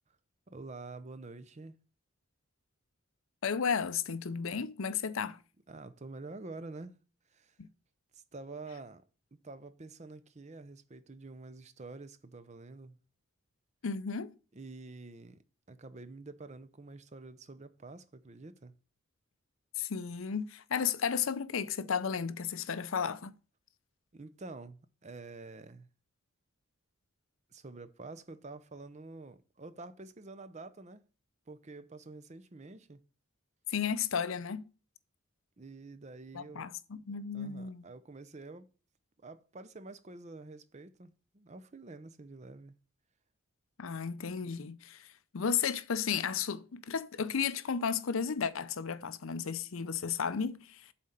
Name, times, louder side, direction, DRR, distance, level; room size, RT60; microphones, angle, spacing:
voice 1, 0.5-1.7 5.7-7.0 7.3-7.6 8.1-9.0 9.3-13.0 14.5-15.4 15.7-18.7 24.1-25.9 27.5-31.0 31.5-33.0 35.6-36.7 37.3-38.7 39.2-42.8, right 3 dB, 30° right, 0.6 m, -48 dB
voice 2, 3.4-5.4 7.6-7.7 13.8-14.3 19.8-23.3 33.7-34.6 36.3-37.8 43.8-45.1 45.3-50.9, left 6 dB, 70° left, 0.6 m, -33 dB
7.4 x 4.3 x 6.6 m
head